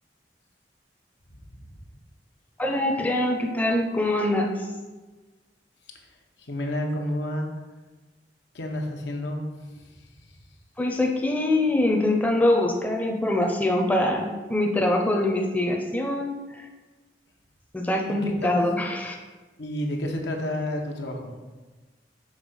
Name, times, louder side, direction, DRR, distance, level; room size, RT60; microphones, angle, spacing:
voice 1, 2.6-4.7 10.8-16.6 17.7-19.2, left 1 dB, 10° left, 1 dB, 0.5 m, -24 dB
voice 2, 6.4-7.5 8.5-9.4 9.8-9.9 10.2-10.3 18.1-18.6 19.6-21.3, left 1 dB, 85° left, 2 dB, 0.9 m, -30 dB
6.3 x 3.3 x 5.4 m, 1.3 s
head